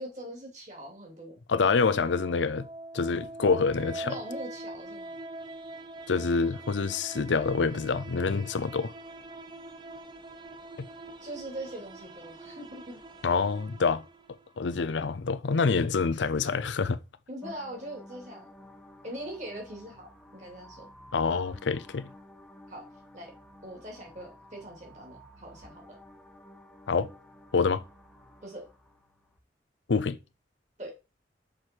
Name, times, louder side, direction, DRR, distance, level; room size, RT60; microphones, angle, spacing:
voice 1, 0.0-1.3 4.0-5.2 11.2-13.0 17.3-18.5 19.0-20.9 22.7-22.9 23.1-23.3 23.6-25.8 28.4-28.6 30.8-30.9, right 1 dB, 40° right, 2.9 m, -41 dB
voice 2, 1.5-2.7 2.9-4.2 6.1-8.9 13.2-14.0 14.6-17.0 21.1-22.1 26.9-27.1 27.5-27.8 29.9-30.2, left 4 dB, 90° left, 0.6 m, -26 dB
sound 1, 1.9-14.7, right 2 dB, 25° right, 0.6 m, -44 dB
sound 2, 17.4-29.4, equal, 5° left, 1.0 m, -52 dB
6.3 x 4.9 x 4.5 m
head